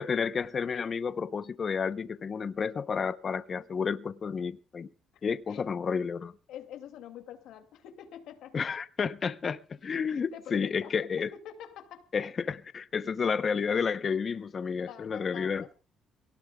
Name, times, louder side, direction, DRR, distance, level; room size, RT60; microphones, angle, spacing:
voice 1, 0.0-4.9 5.2-6.3 8.5-11.3 12.1-15.6, left 6 dB, 30° left, 0.7 m, -31 dB
voice 2, 6.5-8.6 10.1-12.1 14.8-15.7, left 10 dB, 90° left, 2.2 m, -46 dB
26.0 x 18.0 x 2.2 m
cardioid pair, 160°, 0 cm